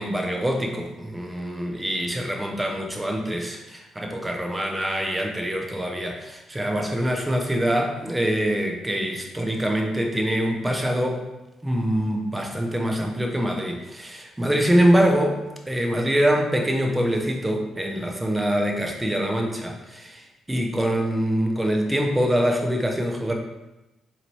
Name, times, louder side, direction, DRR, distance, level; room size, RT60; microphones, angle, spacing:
voice 1, 0.0-11.2 11.6-15.4 15.7-23.3, equal, 10° right, 1 dB, 0.6 m, -24 dB
4.0 x 2.8 x 3.0 m, 1.0 s
cardioid pair, 90°, 0 cm